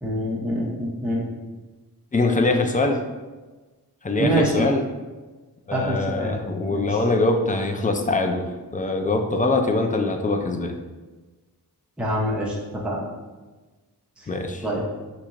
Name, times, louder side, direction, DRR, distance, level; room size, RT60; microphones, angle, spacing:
voice 1, 0.0-1.2 4.2-4.7 5.7-7.0 12.0-13.0 14.2-14.3 14.6-14.8, equal, 5° right, -4 dB, 0.7 m, -26 dB
voice 2, 2.1-3.0 4.0-4.8 5.7-10.8 14.3-14.6, left 2 dB, 20° left, 4 dB, 0.3 m, -23 dB
4.3 x 2.9 x 2.5 m, 1.3 s
wide cardioid pair, 65°, 41 cm